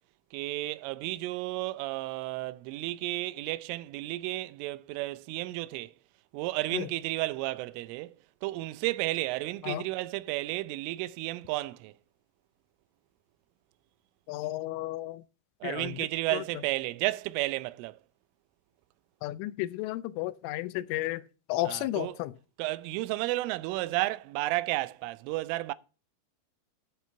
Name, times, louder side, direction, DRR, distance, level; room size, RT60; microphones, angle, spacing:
voice 1, 0.3-5.9 6.3-8.2 8.4-11.9 15.6-18.0 21.7-22.2 22.6-25.7, right 18 dB, 85° right, 3.2 m, -32 dB
voice 2, 14.3-15.2 15.6-16.0 19.2-21.2 21.5-22.3, left 16 dB, 85° left, 3.1 m, -33 dB
10.5 x 8.4 x 4.4 m
omnidirectional pair, 5.7 m